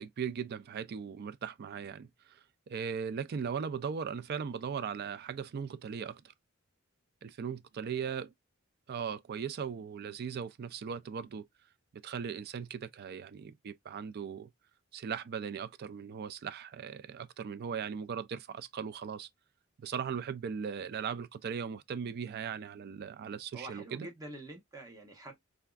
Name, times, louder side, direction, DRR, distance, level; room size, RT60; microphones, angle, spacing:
voice 1, 0.0-6.2 7.2-8.3 8.9-11.5 12.0-14.5 14.9-19.3 19.8-24.1, right 7 dB, 50° right, 0.3 m, -38 dB
voice 2, 7.7-8.1 23.5-25.4, right 1 dB, 15° right, 0.9 m, -47 dB
3.4 x 2.3 x 2.3 m
head